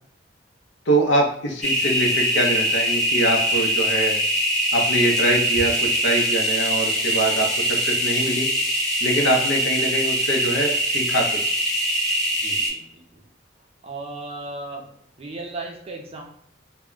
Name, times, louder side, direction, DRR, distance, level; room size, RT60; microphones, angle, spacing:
voice 1, 0.9-4.2 4.7-8.5 9.0-11.4, right 1 dB, 75° left, 2 dB, 0.6 m, -23 dB
sound 1, 1.6-12.7, equal, ahead, 0.7 m, -23 dB
voice 2, 12.4-13.3 13.8-14.9 15.2-16.2, right 2 dB, 35° right, 1 dB, 0.5 m, -36 dB
2.1 x 2.1 x 3.7 m, 0.63 s
head